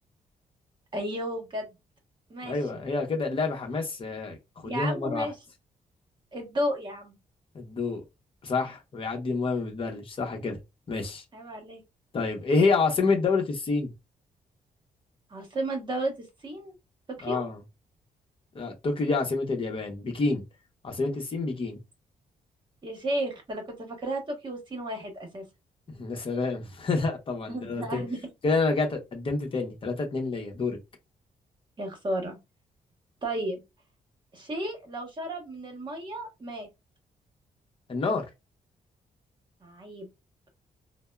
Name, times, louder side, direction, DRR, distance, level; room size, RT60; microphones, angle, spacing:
voice 1, 0.9-1.7 2.3-2.8 4.6-5.3 6.3-7.2 11.3-11.8 15.3-16.7 17.2-17.4 22.8-25.4 27.5-28.3 31.8-32.4 33.2-33.6 34.3-36.7 39.6-40.1, right 1 dB, 35° right, 1.0 m, -33 dB
voice 2, 2.4-5.3 7.5-8.0 8.4-10.6 10.9-11.2 12.1-13.9 17.2-17.6 18.5-20.4 20.8-21.8 25.9-28.0 28.4-30.8 37.9-38.3, left 3 dB, 40° left, 0.8 m, -28 dB
3.4 x 2.0 x 2.2 m
wide cardioid pair, 135°, 14 cm